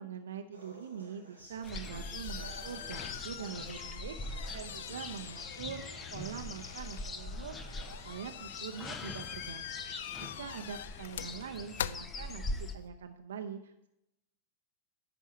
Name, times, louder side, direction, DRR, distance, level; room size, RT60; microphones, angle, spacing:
voice 1, 0.0-7.8 8.0-13.9, right 7 dB, 65° right, 5 dB, 0.6 m, -44 dB
sound 1, 0.5-8.5, equal, 85° left, 2.5 m, -55 dB
sound 2, 1.4-12.9, left 10 dB, 60° left, 0.3 m, -45 dB
sound 3, 1.6-12.8, left 2 dB, 20° left, 0.8 m, -42 dB
11.0 x 4.6 x 7.3 m, 0.84 s
figure-of-eight pair, 90°, 0 cm